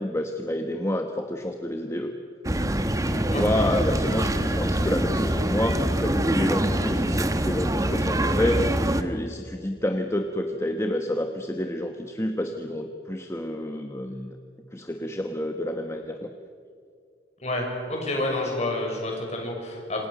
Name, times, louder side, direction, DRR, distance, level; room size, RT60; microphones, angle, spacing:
voice 1, 0.0-2.1 3.1-14.4 14.7-16.3, left 1 dB, 15° left, 5 dB, 1.1 m, -29 dB
sound 1, 2.4-9.0, right 1 dB, 20° right, 1.2 m, -24 dB
voice 2, 17.4-20.1, left 1 dB, 35° left, 0 dB, 6.5 m, -29 dB
27.5 x 27.0 x 6.6 m, 2.3 s
head